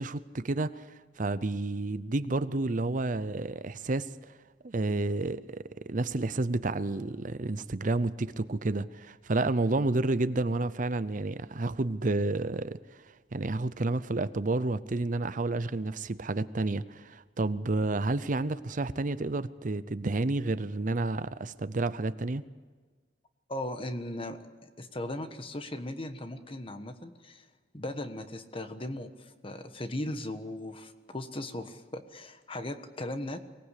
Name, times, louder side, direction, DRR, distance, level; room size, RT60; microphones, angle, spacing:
voice 1, 0.0-4.3 4.6-12.8 13.3-22.4, right 2 dB, 45° right, 15 dB, 0.6 m, -30 dB
voice 2, 23.5-27.5 27.7-33.4, left 1 dB, 30° left, 9 dB, 1.4 m, -38 dB
24.0 x 19.0 x 8.3 m, 1.5 s
head